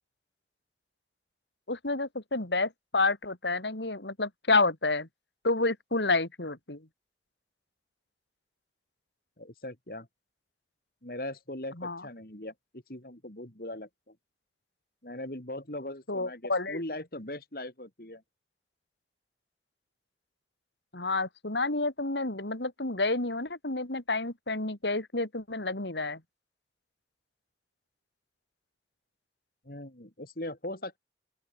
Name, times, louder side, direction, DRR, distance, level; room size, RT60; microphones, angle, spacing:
voice 1, 1.7-5.1 5.4-6.9 11.8-12.0 16.1-16.8 20.9-26.2, left 3 dB, 80° left, 3.4 m, -29 dB
voice 2, 9.4-10.1 11.0-14.1 15.0-18.2 29.6-31.0, left 1 dB, 55° left, 3.3 m, -40 dB
open air
head